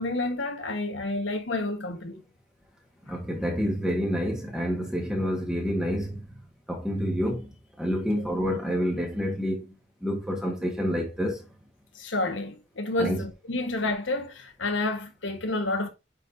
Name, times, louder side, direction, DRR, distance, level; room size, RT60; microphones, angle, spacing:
voice 1, 0.0-2.2 11.9-15.9, left 2 dB, 90° left, 1.4 m, -29 dB
voice 2, 3.1-6.4 6.7-7.5 7.8-9.7 10.0-11.4 13.0-13.2, equal, 5° right, 1.5 m, -28 dB
9.0 x 4.4 x 2.6 m
head